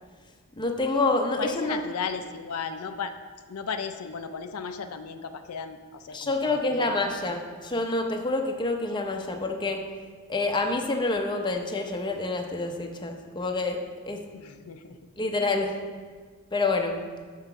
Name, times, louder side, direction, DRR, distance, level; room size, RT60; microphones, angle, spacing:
voice 1, 0.6-1.8 6.1-9.9 10.3-14.2 15.2-15.8 16.5-17.1, left 2 dB, 20° left, 3 dB, 0.6 m, -27 dB
voice 2, 1.4-3.1 3.5-7.2 14.3-15.0, left 5 dB, 90° left, 8 dB, 0.5 m, -35 dB
6.6 x 5.7 x 5.8 m, 1.5 s
head